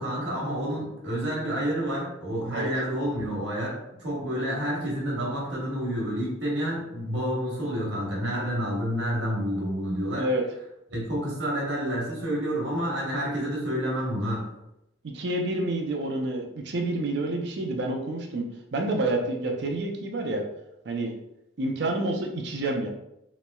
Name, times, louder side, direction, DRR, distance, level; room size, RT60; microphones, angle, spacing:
voice 1, 0.0-10.3 10.9-14.4, equal, 75° right, -3 dB, 1.1 m, -29 dB
voice 2, 15.0-20.4 20.8-21.1 21.6-22.9, right 2 dB, 60° right, 1 dB, 0.5 m, -28 dB
3.1 x 3.0 x 2.2 m, 0.86 s
head